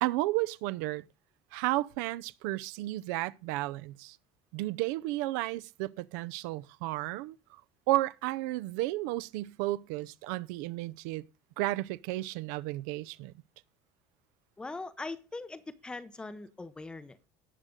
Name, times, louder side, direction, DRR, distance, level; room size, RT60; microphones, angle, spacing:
voice 1, 0.0-1.1 1.5-4.2 4.5-7.4 7.9-11.2 11.6-13.3, right 17 dB, 75° right, 0.6 m, -33 dB
voice 2, 14.6-17.3, left 3 dB, 10° left, 0.6 m, -41 dB
17.5 x 6.5 x 3.7 m
cardioid pair, 170°, 10 cm